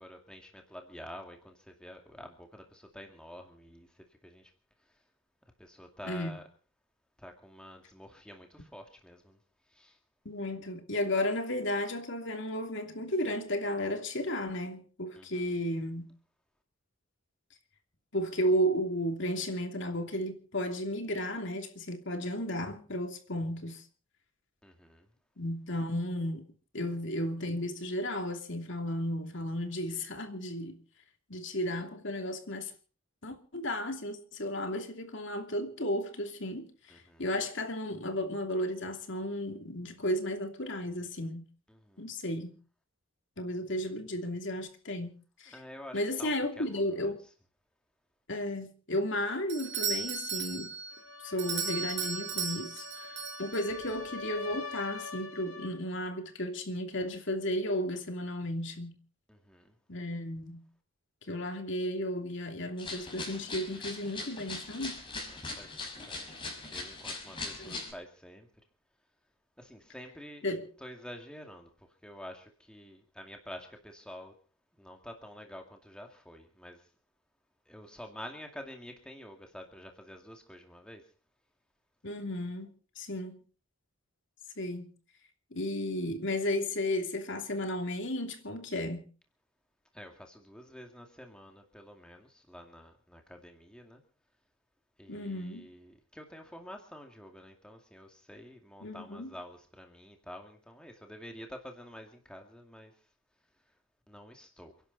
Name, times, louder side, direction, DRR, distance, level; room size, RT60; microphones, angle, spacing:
voice 1, 0.0-4.5 4.9-5.0 5.6-6.4 7.2-9.4 9.7-10.0 15.2-15.6 24.6-25.1 36.9-37.3 41.7-42.1 45.5-47.1 59.3-59.7 65.2-68.5 69.6-70.5 70.8-74.4 74.8-76.9 77.7-81.1 89.9-94.0 95.0-103.0 104.1-104.7, equal, 5° left, 2.3 m, -49 dB
voice 2, 6.0-6.4 10.2-16.1 18.1-23.8 25.4-30.8 31.3-32.7 33.2-41.4 42.0-42.5 43.4-45.1 45.4-45.6 45.9-47.2 48.3-50.7 51.2-59.0 59.9-60.7 61.3-65.0 67.6-67.8 70.4-70.7 82.0-82.7 83.0-83.4 84.6-84.9 85.5-89.1 95.1-95.7 98.8-99.3, left 1 dB, 55° left, 2.9 m, -34 dB
Doorbell, 49.5-54.0, right 6 dB, 55° right, 4.8 m, -36 dB
sound 1, 50.9-55.8, left 3 dB, 85° left, 2.5 m, -43 dB
sound 2, 62.8-67.9, left 3 dB, 25° left, 5.5 m, -40 dB
29.5 x 11.5 x 4.1 m
head